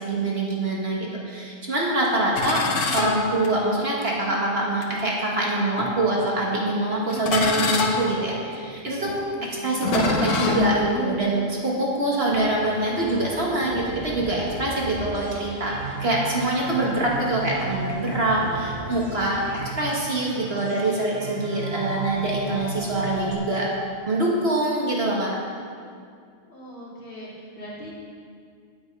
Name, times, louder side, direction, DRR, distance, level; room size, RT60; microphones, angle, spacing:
voice 1, 0.0-2.6 2.9-9.1 9.4-19.4 19.8-23.7 24.1-25.4, right 1 dB, 50° right, -3 dB, 1.7 m, -24 dB
sound 1, 2.3-4.0 4.8-5.0 5.8-6.3 7.1-11.2, left 3 dB, 70° left, 1.3 m, -27 dB
sound 2, 12.3-23.3, right 4 dB, 80° right, 1.4 m, -34 dB
voice 2, 26.5-27.9, equal, 45° left, -8 dB, 3.0 m, -40 dB
9.7 x 7.9 x 5.4 m, 2.2 s
omnidirectional pair, 1.4 m